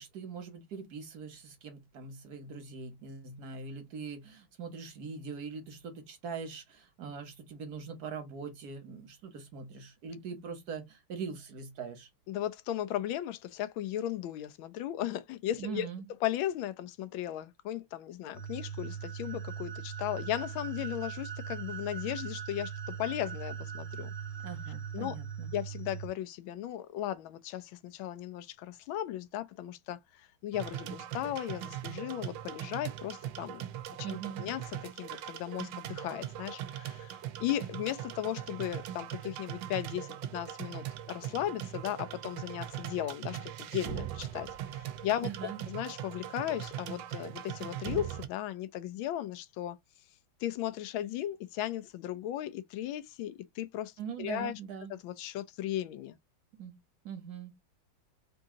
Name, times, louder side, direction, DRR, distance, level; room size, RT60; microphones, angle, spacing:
voice 1, 0.0-12.1 15.6-16.1 24.4-25.5 34.0-34.5 45.2-45.6 54.0-54.9 56.6-56.8 57.0-57.5, right 6 dB, 55° right, 1.4 m, -42 dB
voice 2, 12.3-15.9 16.2-24.1 24.9-25.2 25.5-33.6 34.1-34.6 35.0-44.5 44.7-45.3 45.7-49.8 50.4-53.9 54.2-54.6 54.9-56.2, left 12 dB, 75° left, 1.3 m, -36 dB
sound 1, 18.3-26.1, right 7 dB, 5° left, 0.6 m, -40 dB
sound 2, 30.5-48.3, right 11 dB, 75° right, 1.2 m, -40 dB
3.8 x 2.7 x 3.6 m
omnidirectional pair, 2.3 m